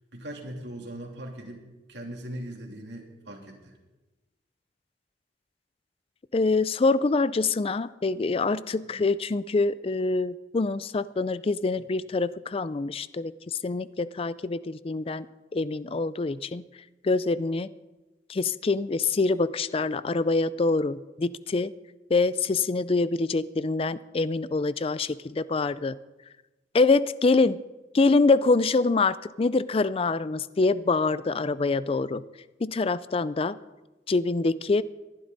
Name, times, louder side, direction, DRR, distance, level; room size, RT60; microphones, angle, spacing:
voice 1, 0.1-1.6 1.9-3.7 8.9-9.0, right 1 dB, 70° right, 0 dB, 2.9 m, -39 dB
voice 2, 6.3-15.3 15.5-16.6 17.0-17.7 18.3-21.7 22.1-25.9 26.7-27.6 27.9-32.2 32.6-33.6 34.1-34.8, left 3 dB, 30° left, 17 dB, 0.4 m, -25 dB
21.0 x 11.5 x 4.0 m, 1.1 s
head